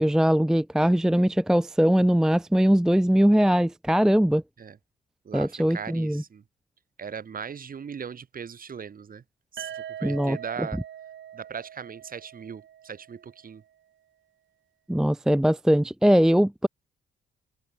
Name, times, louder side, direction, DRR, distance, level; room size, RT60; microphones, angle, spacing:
voice 1, 0.0-4.4 5.3-6.2 10.0-10.7 14.9-16.7, equal, 5° right, 0.5 m, -21 dB
voice 2, 5.2-6.4 7.0-9.2 9.5-10.8 11.3-13.6, right 6 dB, 45° right, 4.9 m, -39 dB
sound 1, 9.6-13.4, right 10 dB, 65° right, 4.8 m, -42 dB
cardioid pair, 90°, 20 cm